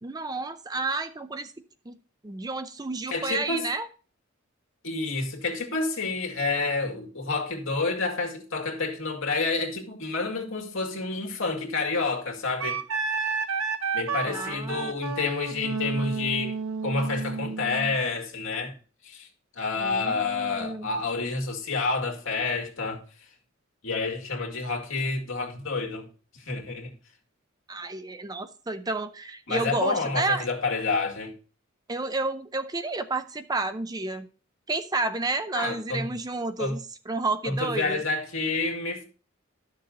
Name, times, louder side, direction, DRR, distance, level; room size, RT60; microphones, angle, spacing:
voice 1, 0.0-1.5 1.9-2.0 2.2-3.9 14.3-14.9 19.8-20.9 27.7-30.5 31.9-34.3 34.7-38.0, right 3 dB, 20° right, 0.5 m, -31 dB
voice 2, 3.1-3.7 4.8-12.8 13.9-16.6 16.8-18.7 19.0-19.3 19.6-23.0 23.8-26.1 26.3-26.9 29.5-31.3 35.5-36.1 36.6-36.8 37.4-39.0, left 3 dB, 65° left, 2.3 m, -29 dB
Wind instrument woodwind instrument, 12.6-18.0, right 5 dB, 80° right, 1.1 m, -31 dB
11.5 x 6.7 x 3.9 m
head